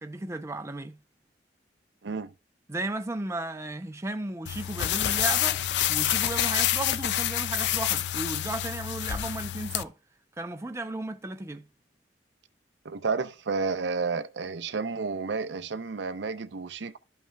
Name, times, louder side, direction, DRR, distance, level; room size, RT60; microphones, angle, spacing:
voice 1, 0.0-1.0 2.7-5.6 5.9-9.9 10.4-11.6, right 2 dB, 15° right, 0.5 m, -34 dB
voice 2, 2.0-2.3 12.8-17.0, right 4 dB, 90° right, 0.6 m, -31 dB
sound 1, 4.5-9.8, left 12 dB, 70° left, 0.4 m, -27 dB
12.5 x 5.4 x 2.3 m
head